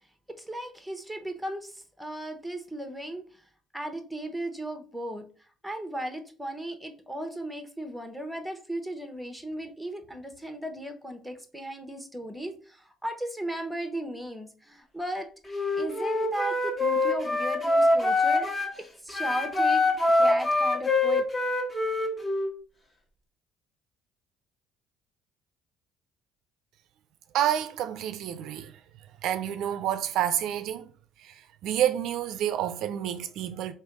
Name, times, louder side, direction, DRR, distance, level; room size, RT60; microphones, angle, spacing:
voice 1, 0.3-3.5 3.7-5.3 5.6-18.5 19.0-21.2, right 1 dB, ahead, 0.9 m, -36 dB
Wind instrument woodwind instrument, 15.5-18.7 19.1-22.5, left 2 dB, 25° left, 1.4 m, -24 dB
voice 2, 27.3-28.7 29.2-30.9 31.2-33.7, right 11 dB, 70° right, 0.4 m, -29 dB
3.3 x 2.9 x 4.6 m
supercardioid pair, 85°, 0 cm